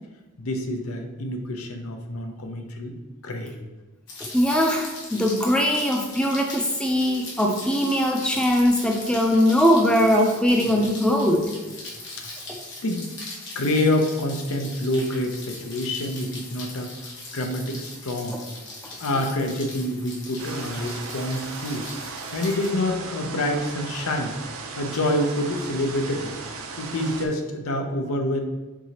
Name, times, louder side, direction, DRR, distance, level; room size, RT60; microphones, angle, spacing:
voice 1, 0.4-2.9 3.2-3.6 12.8-13.1 13.5-16.9 17.3-18.4 19.0-21.9 22.3-24.3 24.8-26.4 26.8-28.4, left 1 dB, 85° left, 4 dB, 0.6 m, -27 dB
Rain, 4.1-22.7, left 2 dB, 55° left, 1.1 m, -40 dB
voice 2, 4.2-11.5 12.5-12.6, equal, 5° left, 1 dB, 0.4 m, -21 dB
sound 1, 20.4-27.3, right 4 dB, 75° right, 0.6 m, -37 dB
4.8 x 3.8 x 2.8 m, 1.2 s
head